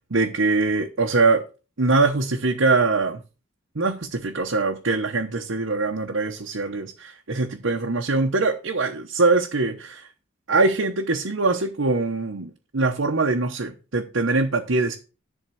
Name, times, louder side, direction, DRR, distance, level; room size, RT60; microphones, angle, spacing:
voice 1, 0.1-1.4 1.8-3.2 3.7-10.1 10.5-15.0, right 3 dB, 70° right, 1.0 m, -23 dB
11.0 x 3.9 x 6.9 m
head